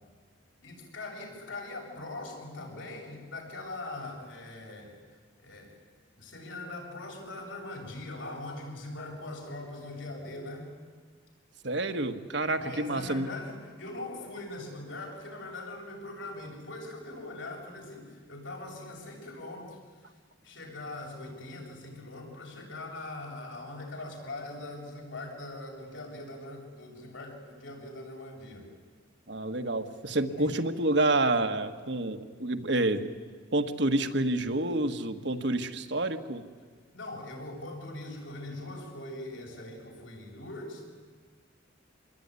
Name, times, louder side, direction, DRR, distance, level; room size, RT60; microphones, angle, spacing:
voice 1, 0.6-5.0 5.4-5.7 6.2-10.7 12.6-20.1 20.4-28.7 30.4-30.5 36.9-40.8, left 2 dB, 75° left, 0 dB, 7.6 m, -41 dB
voice 2, 11.6-13.3 29.3-33.1 33.5-36.4, right 2 dB, 60° right, 7 dB, 1.5 m, -28 dB
27.0 x 21.5 x 9.7 m, 1.5 s
head